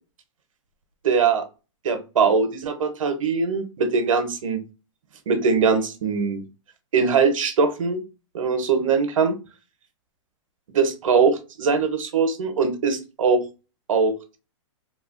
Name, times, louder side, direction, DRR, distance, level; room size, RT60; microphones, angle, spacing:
voice 1, 1.0-1.4 1.8-4.6 5.3-6.4 6.9-8.0 8.3-9.3 10.7-13.4 13.9-14.4, right 5 dB, 90° right, 7 dB, 0.7 m, -21 dB
2.8 x 2.3 x 2.4 m, 0.31 s
hypercardioid pair, 155°, 16 cm